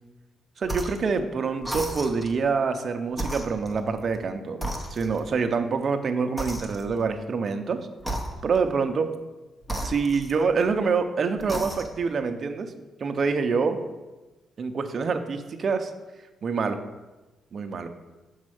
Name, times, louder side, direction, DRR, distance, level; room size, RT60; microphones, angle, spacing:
sound 1, 0.6-1.1 1.6-2.4 3.1-4.2 4.6-5.4 6.4-7.1 8.0-8.7 9.6-10.8 11.4-12.1, right 1 dB, 10° left, 0.7 m, -34 dB
voice 1, 0.6-7.8 8.4-9.1 9.8-12.7 13.0-13.8 14.6-15.9 16.4-16.8 17.5-17.9, right 5 dB, 40° right, 7 dB, 0.6 m, -26 dB
6.3 x 4.2 x 6.3 m, 1.1 s
cardioid pair, 160°, 0 cm